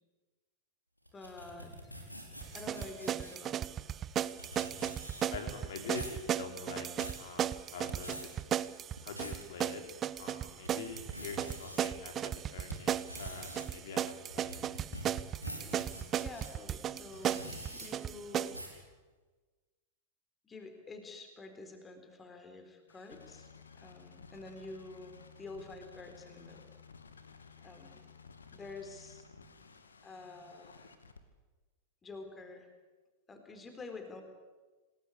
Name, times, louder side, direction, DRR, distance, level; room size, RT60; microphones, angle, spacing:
sound 1, 1.1-3.5 4.1-4.2 4.4-5.4 5.8-6.2 6.7-7.2 7.7-8.2 8.8-9.4 9.9-10.0 10.5-11.8 12.3-16.5 17.1-17.9 18.5-18.8, equal, 90° left, 5.1 m, -46 dB
voice 1, 1.1-1.9 2.5-3.7 16.2-18.7 20.4-23.5 23.8-26.6 27.3-28.0 28.5-29.6 30.0-30.9 32.0-32.7 33.3-34.2, left 3 dB, 20° left, 6 dB, 4.1 m, -48 dB
sound 2, 2.4-18.6, right 10 dB, 30° right, 0.8 m, -36 dB
voice 2, 5.3-6.9 7.2-8.3 9.0-9.8 10.2-14.7, left 5 dB, 60° left, 4 dB, 4.9 m, -45 dB
sound 3, 22.9-31.2, left 5 dB, 75° left, 2.2 m, -55 dB
28.0 x 19.5 x 8.6 m, 1.3 s
figure-of-eight pair, 90°, 0 cm